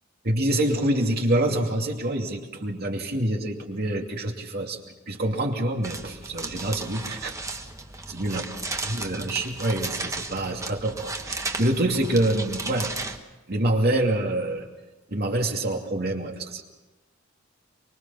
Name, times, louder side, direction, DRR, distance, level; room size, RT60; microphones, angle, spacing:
voice 1, 0.2-4.8 5.1-7.3 8.1-8.4 8.8-12.9 13.5-14.7 15.1-16.6, right 1 dB, 50° right, 2 dB, 2.6 m, -26 dB
sound 1, 5.8-13.2, right 3 dB, 15° right, 1.3 m, -35 dB
24.5 x 23.0 x 5.7 m, 1.1 s
head